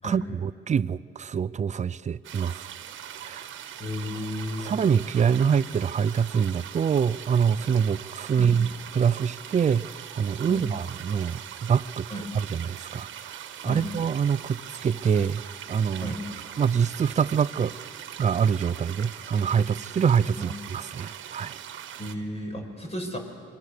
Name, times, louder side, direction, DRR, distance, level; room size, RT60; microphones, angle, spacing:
voice 1, 0.0-2.6 3.2-3.5 4.6-8.7 8.9-9.9 10.1-12.1 12.3-16.1 16.6-17.7 18.2-21.6, right 7 dB, 35° right, 17 dB, 0.6 m, -25 dB
sound 1, 2.2-22.2, right 10 dB, 75° right, 1.5 m, -41 dB
voice 2, 3.8-4.7 8.3-8.6 10.5-10.7 12.1-12.3 13.6-13.8 16.0-16.2 20.4-20.5 22.0-23.2, equal, 30° left, 2 dB, 5.8 m, -33 dB
26.5 x 24.0 x 6.8 m, 2.2 s
cardioid pair, 90°, 20 cm